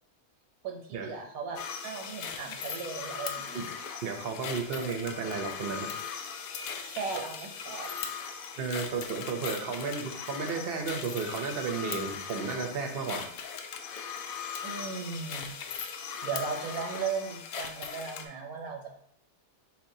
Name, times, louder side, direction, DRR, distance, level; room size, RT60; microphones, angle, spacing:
voice 1, 0.6-3.6 6.9-7.9 14.6-15.9 16.2-19.0, right 5 dB, 85° right, 3 dB, 1.2 m, -37 dB
sound 1, 1.6-18.3, left 7 dB, 85° left, 1.1 m, -39 dB
voice 2, 4.0-6.0 8.6-13.3, right 5 dB, 55° right, 4 dB, 0.8 m, -33 dB
4.4 x 4.3 x 2.7 m, 0.71 s
omnidirectional pair, 1.5 m